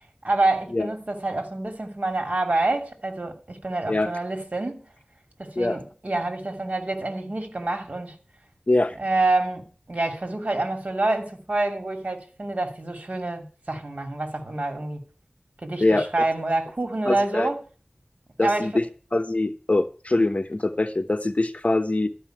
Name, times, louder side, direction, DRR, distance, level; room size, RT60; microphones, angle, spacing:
voice 1, 0.2-4.8 5.4-8.2 9.0-15.0 15.6-17.6 18.4-18.8, right 2 dB, 60° right, 2.7 m, -27 dB
voice 2, 15.8-16.3 17.1-17.5 18.4-18.8 19.1-22.1, left 2 dB, 55° left, 1.0 m, -23 dB
13.0 x 5.6 x 9.0 m
wide cardioid pair, 50°, 3 cm